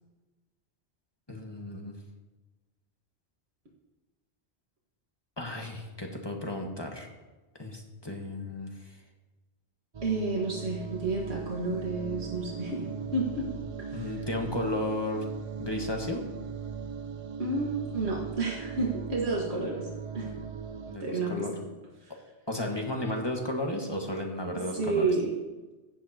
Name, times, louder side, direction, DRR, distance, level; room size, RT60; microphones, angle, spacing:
voice 1, 1.3-2.0 5.4-7.1 7.6-9.0 13.9-15.3 15.6-16.2 20.9-21.5 22.5-25.0, left 1 dB, 25° left, 1 dB, 1.4 m, -34 dB
sound 1, 9.9-21.0, right 6 dB, 50° right, 0.4 m, -39 dB
voice 2, 10.0-13.5 13.9-14.2 17.4-19.9 20.1-20.3 21.0-21.6 22.0-22.1 24.5-25.3, right 3 dB, 75° right, -3 dB, 2.0 m, -31 dB
15.5 x 10.5 x 2.9 m, 1.2 s
omnidirectional pair, 1.1 m